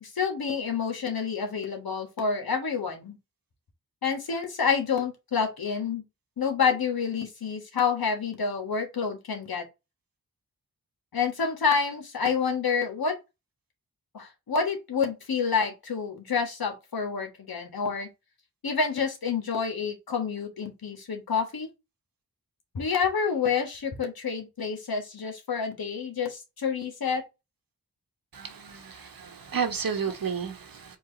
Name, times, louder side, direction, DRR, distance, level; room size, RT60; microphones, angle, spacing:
voice 1, 0.0-3.2 4.0-6.0 6.4-9.6 11.1-13.1 14.1-18.1 18.6-21.7 22.7-27.2, left 6 dB, 85° left, 1.5 m, -28 dB
voice 2, 28.3-31.0, right 6 dB, 70° right, 1.3 m, -32 dB
4.6 x 2.8 x 3.9 m
wide cardioid pair, 70°, 35 cm